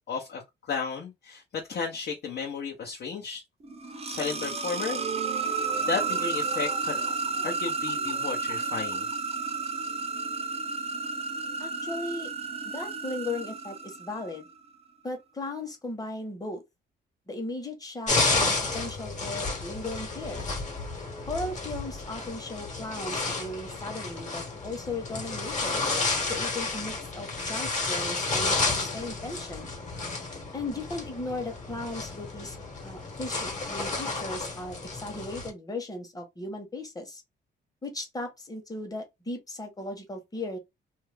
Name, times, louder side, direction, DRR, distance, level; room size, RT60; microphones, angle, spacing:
voice 1, 0.1-0.4 0.7-3.4 4.1-5.0 5.9-7.0 7.4-9.1, left 5 dB, 55° left, 0.9 m, -33 dB
sound 1, 3.6-14.4, right 4 dB, 30° right, 0.6 m, -32 dB
voice 2, 11.6-12.3 12.6-14.5 15.0-16.6 17.3-20.5 21.3-25.8 26.3-29.7 30.5-32.6 32.8-37.2 37.8-40.6, left 2 dB, 20° left, 1.1 m, -37 dB
sound 2, 18.1-35.5, left 3 dB, 35° left, 1.3 m, -31 dB
2.6 x 2.2 x 3.3 m
cardioid pair, 90°, 20 cm